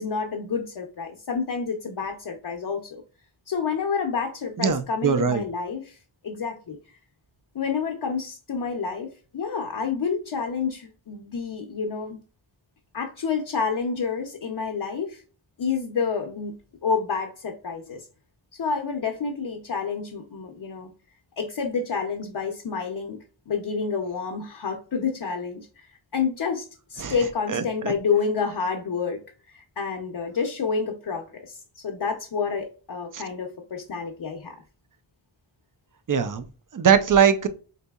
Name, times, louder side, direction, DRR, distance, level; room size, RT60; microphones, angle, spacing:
voice 1, 0.0-3.0 3.5-6.0 6.2-6.8 7.5-12.2 12.9-15.2 15.6-16.6 16.8-18.1 18.6-20.9 21.4-29.2 29.5-34.6, left 5 dB, 55° left, 0.6 m, -29 dB
voice 2, 4.6-5.4 27.0-27.1 27.5-27.9 33.1-33.2 36.1-36.4 36.7-37.5, right 7 dB, 45° right, 0.5 m, -21 dB
4.0 x 2.7 x 2.2 m
wide cardioid pair, 60°, 47 cm